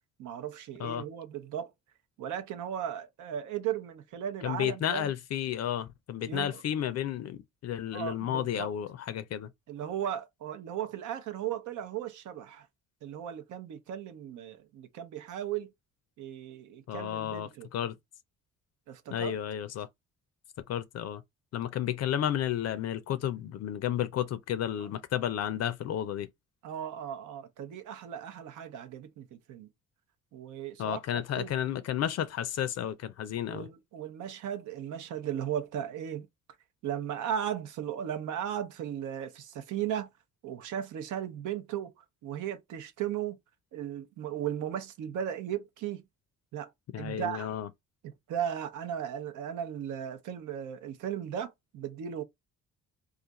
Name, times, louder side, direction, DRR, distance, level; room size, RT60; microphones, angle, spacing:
voice 1, 0.2-1.7 2.2-5.1 6.2-6.6 7.9-8.7 9.7-12.7 13.0-15.7 16.2-17.7 18.9-19.4 26.6-29.7 30.3-31.6 33.5-36.3 36.8-40.1 40.4-43.4 43.7-46.0 46.5-46.7 47.0-47.5 48.0-52.2, right 10 dB, 85° right, 0.7 m, -36 dB
voice 2, 4.4-9.5 16.9-17.9 19.1-19.9 20.7-21.2 21.5-26.3 30.8-33.7 46.9-47.7, left 10 dB, 55° left, 0.5 m, -32 dB
2.5 x 2.4 x 3.9 m
cardioid pair, 90°, 30 cm